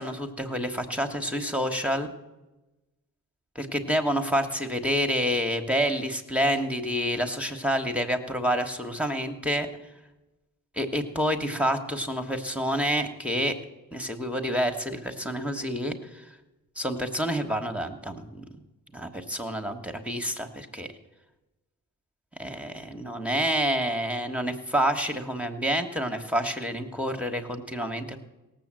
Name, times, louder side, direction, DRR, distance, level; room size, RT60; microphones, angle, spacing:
voice 1, 0.0-2.1 3.5-9.7 10.7-13.5 13.9-16.2 16.7-18.4 18.9-20.9 22.4-28.2, equal, 5° right, 5 dB, 1.4 m, -28 dB
17.0 x 7.4 x 7.6 m, 1.1 s
cardioid pair, 55°, 34 cm